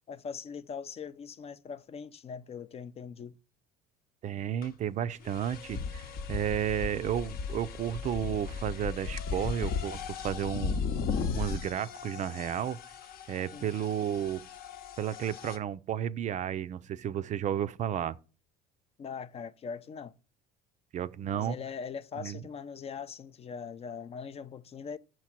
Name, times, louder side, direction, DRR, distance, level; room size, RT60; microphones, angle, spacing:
voice 1, 0.1-3.3 13.5-13.7 19.0-20.2 21.3-25.0, left 6 dB, 35° left, 0.5 m, -41 dB
voice 2, 4.2-10.8 11.3-12.8 13.3-14.4 15.0-18.2 20.9-21.6 22.2-22.4, right 10 dB, 40° right, 0.4 m, -32 dB
sound 1, 4.6-4.7 5.2-15.6, left 5 dB, 55° left, 0.8 m, -36 dB
6.2 x 4.6 x 5.8 m
hypercardioid pair, 70°, 19 cm